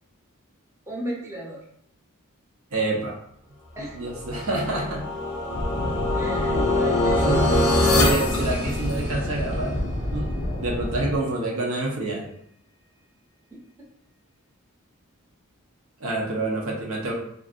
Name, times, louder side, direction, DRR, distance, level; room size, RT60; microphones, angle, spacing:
voice 1, 0.9-1.6 3.7-4.1 6.1-7.7 13.5-13.6, right 1 dB, 15° right, -6 dB, 0.6 m, -34 dB
voice 2, 2.7-3.2 3.9-5.1 7.2-7.4 7.9-12.3 16.0-17.1, right 2 dB, 70° right, -2 dB, 0.7 m, -28 dB
sound 1, 4.2-9.4, left 2 dB, 85° left, 0.7 m, -24 dB
sound 2, 5.5-11.2, left 1 dB, 45° left, 0.4 m, -29 dB
2.5 x 2.5 x 2.4 m, 0.70 s
head